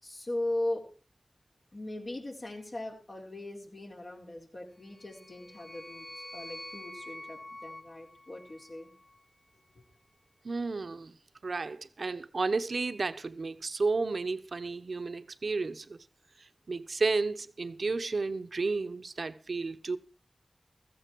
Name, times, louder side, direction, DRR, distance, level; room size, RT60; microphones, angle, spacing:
voice 1, 0.0-0.9 1.7-8.9 9.7-9.8, left 1 dB, 60° left, 3.9 m, -38 dB
sound 1, 4.9-9.2, left 1 dB, 20° left, 0.8 m, -47 dB
voice 2, 10.4-11.2 11.4-16.0 16.4-20.0, right 3 dB, 75° right, 1.0 m, -32 dB
15.5 x 14.5 x 4.5 m
cardioid pair, 45°, 0 cm